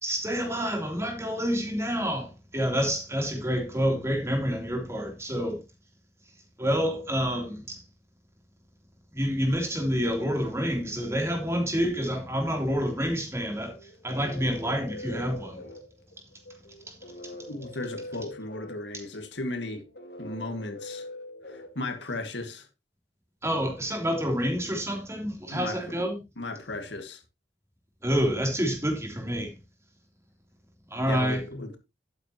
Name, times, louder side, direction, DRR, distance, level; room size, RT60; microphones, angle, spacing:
voice 1, 0.0-5.6 6.6-7.8 9.1-13.8 14.0-15.6 18.9-19.0 23.4-26.2 28.0-29.5 30.9-31.4, equal, 15° right, 3.2 m, -28 dB
sound 1, 13.7-22.4, left 1 dB, 60° left, 2.4 m, -43 dB
voice 2, 17.5-19.8 20.2-21.1 21.5-22.7 25.5-25.8 26.4-27.2 31.1-31.8, left 2 dB, 90° left, 2.0 m, -35 dB
12.0 x 9.0 x 3.0 m
head